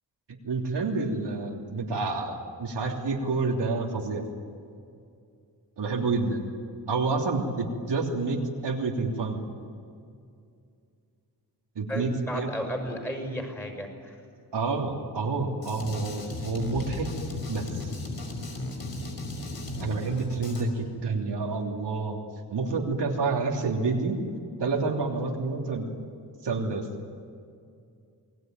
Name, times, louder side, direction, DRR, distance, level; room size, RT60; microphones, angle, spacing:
voice 1, 0.4-4.3 5.8-6.4 6.9-9.4 11.7-12.5 14.5-17.1 17.5-17.7 19.8-22.2 22.5-24.2 24.6-25.9 26.4-26.9, right 3 dB, 80° right, 0 dB, 3.3 m, -28 dB
voice 2, 11.9-14.2, equal, 5° left, 4 dB, 5.9 m, -34 dB
Drum kit, 15.6-20.6, left 2 dB, 60° left, 5.6 m, -35 dB
29.0 x 20.5 x 9.5 m, 2.4 s
wide cardioid pair, 135°, 41 cm